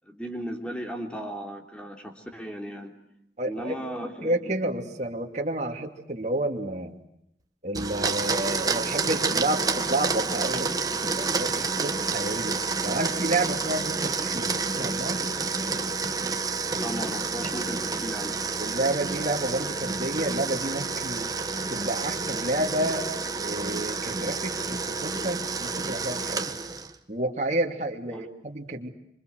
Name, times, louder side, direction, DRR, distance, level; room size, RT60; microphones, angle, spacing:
voice 1, 0.0-2.9 3.5-4.5 16.8-18.4 28.1-28.3, equal, 5° left, 3 dB, 3.4 m, -36 dB
voice 2, 3.4-3.8 4.2-6.9 7.6-10.7 11.2-12.6 12.8-15.2 18.6-21.3 21.7-23.1 23.4-26.6 27.1-28.9, right 1 dB, 40° right, 2 dB, 2.8 m, -30 dB
Domestic sounds home sounds, 7.7-27.0, right 4 dB, 20° right, 1.5 m, -29 dB
27.0 x 26.0 x 8.0 m, 0.80 s
head